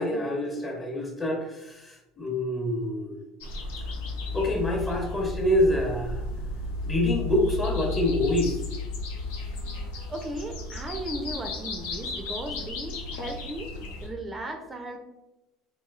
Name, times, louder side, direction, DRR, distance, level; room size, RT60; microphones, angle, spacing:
voice 1, 0.0-3.1 4.3-6.2 6.8-8.6, left 1 dB, 25° left, 0 dB, 0.8 m, -26 dB
sound 1, 3.4-14.1, left 3 dB, 85° left, 0.5 m, -34 dB
voice 2, 9.9-13.7 14.0-15.0, right 1 dB, 25° right, 4 dB, 0.4 m, -36 dB
2.9 x 2.5 x 2.3 m, 0.98 s
supercardioid pair, 85°, 0 cm